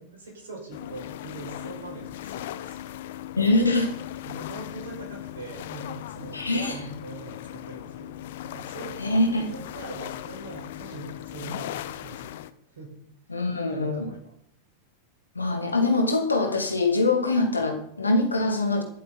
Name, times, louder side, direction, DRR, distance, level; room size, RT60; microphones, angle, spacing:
voice 1, 0.1-2.9 4.2-9.0 9.3-12.4 12.7-13.1 13.7-14.3, right 3 dB, 65° right, 0 dB, 5.7 m, -42 dB
sound 1, 0.7-12.5, left 13 dB, 55° left, 0.7 m, -38 dB
voice 2, 3.4-3.9 6.3-6.8 9.0-9.5 13.3-14.1 15.4-18.8, left 2 dB, 80° left, 4 dB, 2.0 m, -23 dB
22.5 x 7.7 x 4.0 m, 0.69 s
figure-of-eight pair, 90°, 0 cm